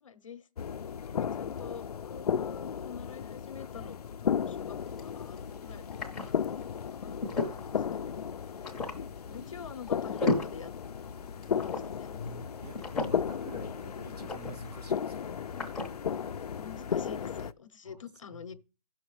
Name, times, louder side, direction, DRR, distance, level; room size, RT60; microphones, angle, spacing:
voice 1, 0.0-5.9 6.2-6.4 6.9-7.6 7.9-8.2 9.2-10.7 11.5-12.2 16.5-18.5, left 7 dB, 55° left, 0.9 m, -47 dB
sound 1, 0.6-17.5, left 7 dB, 75° left, 0.5 m, -35 dB
sound 2, 4.6-17.5, left 3 dB, ahead, 0.7 m, -38 dB
voice 2, 7.3-7.7 12.1-15.5 17.8-18.0 18.3-18.6, left 1 dB, 90° right, 2.2 m, -46 dB
16.5 x 6.2 x 3.2 m
hypercardioid pair, 175°, 20 cm